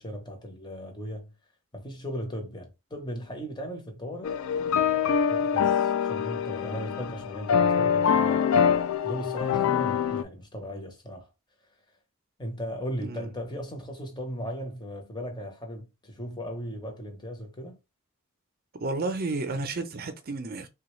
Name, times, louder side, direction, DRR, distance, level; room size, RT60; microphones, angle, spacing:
voice 1, 0.0-1.3 1.7-4.4 5.3-8.4 9.0-11.3 12.4-17.8, equal, 20° left, 0.8 m, -37 dB
sound 1, 4.2-10.2, left 7 dB, 80° left, 0.4 m, -24 dB
voice 2, 18.8-20.7, right 3 dB, 45° right, 0.6 m, -31 dB
3.5 x 2.3 x 3.1 m
head